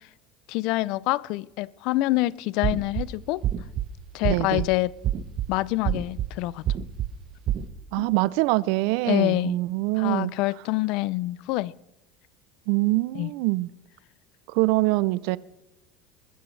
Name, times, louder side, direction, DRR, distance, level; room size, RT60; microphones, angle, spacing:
voice 1, 0.5-3.4 4.1-4.9 5.5-6.6 8.0-8.1 9.1-9.6 10.0-11.7 13.1-13.3, left 19 dB, 60° left, 0.4 m, -26 dB
sound 1, 2.6-3.0 3.4-3.9 4.2-4.7 5.0-5.5 5.8-6.3 6.7-7.1 7.5-7.7, right 11 dB, 40° right, 0.7 m, -26 dB
voice 2, 4.3-4.7 7.9-10.3 12.7-13.7 14.5-15.4, right 21 dB, 70° right, 0.4 m, -24 dB
22.0 x 14.0 x 3.3 m
cardioid pair, 150°, 0 cm